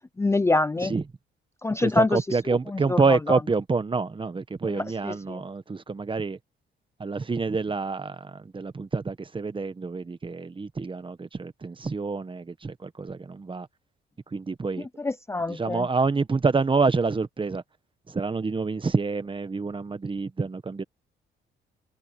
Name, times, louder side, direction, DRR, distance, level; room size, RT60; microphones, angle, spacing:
voice 1, 0.2-0.9 1.6-2.2 2.7-3.0 3.3-3.4 4.6-5.4 15.0-15.9, left 2 dB, 15° left, 0.6 m, -25 dB
voice 2, 1.8-6.4 7.0-13.7 14.3-14.9 15.5-17.6 18.1-20.8, right 4 dB, 25° right, 1.3 m, -27 dB
cardioid pair, 90°, 20 cm